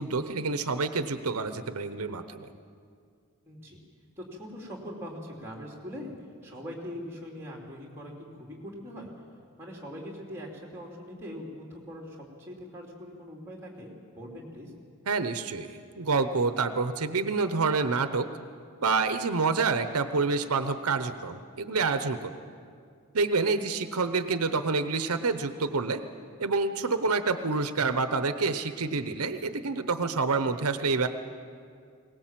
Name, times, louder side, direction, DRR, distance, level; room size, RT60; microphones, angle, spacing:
voice 1, 0.0-2.5 15.1-18.3 18.8-22.3 23.1-26.0 26.4-31.1, right 4 dB, 85° right, 10 dB, 0.9 m, -28 dB
voice 2, 3.5-3.8 4.2-6.1 6.4-9.1 9.6-14.7 23.5-23.7, equal, 10° right, -2 dB, 3.2 m, -42 dB
21.0 x 18.5 x 7.6 m, 2.2 s
head